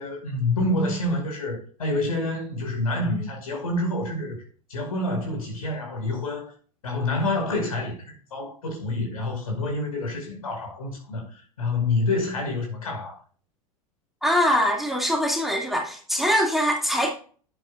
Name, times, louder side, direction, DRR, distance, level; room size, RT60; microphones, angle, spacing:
voice 1, 0.0-4.4 4.7-6.5 6.8-8.0 8.3-13.2, left 2 dB, 75° left, 5.2 m, -27 dB
voice 2, 14.2-17.1, equal, ahead, 2.3 m, -23 dB
11.0 x 10.5 x 2.5 m
figure-of-eight pair, 85°, 18 cm